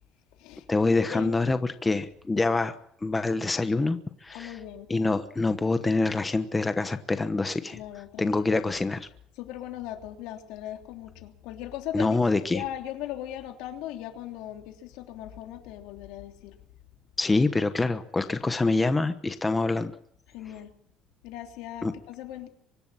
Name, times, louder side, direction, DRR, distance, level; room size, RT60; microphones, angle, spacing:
voice 1, 0.7-2.7 3.0-4.6 4.9-7.8 8.2-9.1 11.9-12.6 17.2-19.9 21.8-21.9, left 3 dB, 10° left, 10 dB, 1.1 m, -25 dB
voice 2, 4.3-4.9 7.7-8.6 9.4-12.2 12.5-16.6 20.3-20.7 21.2-22.5, left 12 dB, 85° left, 5 dB, 3.1 m, -39 dB
24.5 x 12.0 x 9.9 m, 0.70 s
cardioid pair, 160°, 0 cm